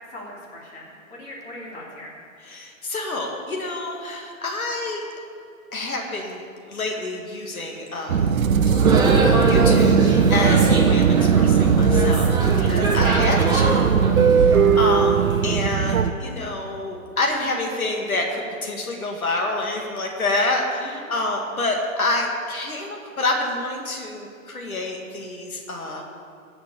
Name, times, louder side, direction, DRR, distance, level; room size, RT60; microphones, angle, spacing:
voice 1, 0.5-2.1 12.9-13.0 20.8-21.1, left 1 dB, 20° left, -6 dB, 3.4 m, -39 dB
voice 2, 2.4-5.0 5.7-8.5 8.8-9.0 9.5-14.0 14.3-26.0, left 2 dB, 85° left, 1 dB, 2.3 m, -27 dB
sound 1, 8.1-16.1, right 7 dB, 75° right, 0.8 m, -18 dB
sound 2, 8.6-15.6, right 2 dB, 10° right, 1.3 m, -24 dB
17.0 x 5.9 x 7.1 m, 2.4 s
hypercardioid pair, 135°, 41 cm